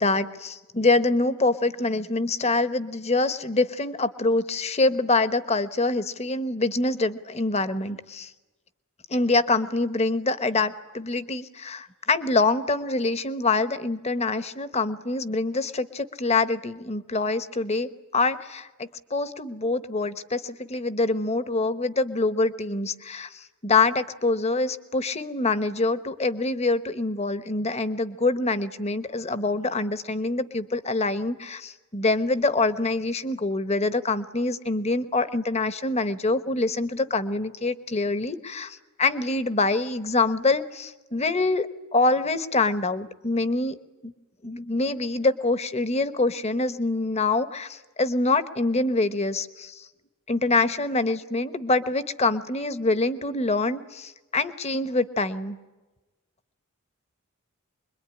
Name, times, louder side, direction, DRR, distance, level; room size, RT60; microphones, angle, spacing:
voice 1, 0.0-8.3 9.1-23.3 23.6-43.7 44.0-44.1 44.4-49.8 50.3-55.6, left 3 dB, 30° left, 12 dB, 1.1 m, -25 dB
25.5 x 22.5 x 9.8 m, 1.1 s
head